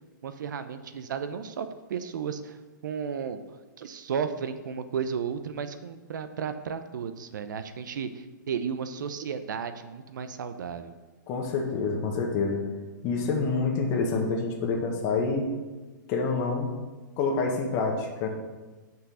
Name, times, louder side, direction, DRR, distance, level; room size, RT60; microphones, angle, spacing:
voice 1, 0.2-2.6 2.8-3.4 3.8-10.9, right 7 dB, 70° right, 10 dB, 0.7 m, -33 dB
voice 2, 11.3-12.6 13.0-15.4 16.1-16.7 17.2-18.3, left 4 dB, 30° left, 1 dB, 1.4 m, -27 dB
6.2 x 5.7 x 6.3 m, 1.2 s
hypercardioid pair, 155°, 11 cm